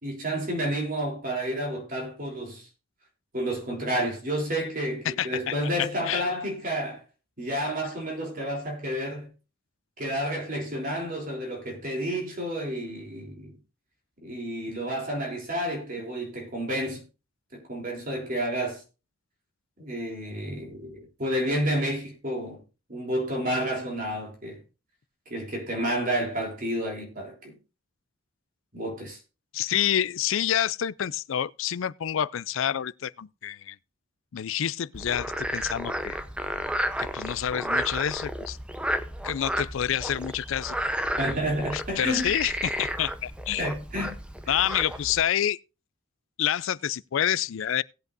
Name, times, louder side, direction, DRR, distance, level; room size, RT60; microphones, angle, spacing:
voice 1, 0.0-2.7 3.3-7.0 7.4-9.3 10.0-13.5 14.2-17.0 17.5-18.8 19.8-22.6 22.9-24.6 25.3-27.6 28.7-29.2 41.2-42.3 43.6-44.2 44.4-44.6, equal, 40° right, 3.4 m, -30 dB
voice 2, 5.1-6.2 29.5-33.8 34.3-36.2 37.0-38.6 39.2-40.8 41.7-43.7 44.5-45.6 46.4-47.8, left 10 dB, 70° left, 0.4 m, -28 dB
Frog, 34.9-45.2, equal, 5° right, 0.7 m, -32 dB
18.5 x 8.1 x 2.6 m
head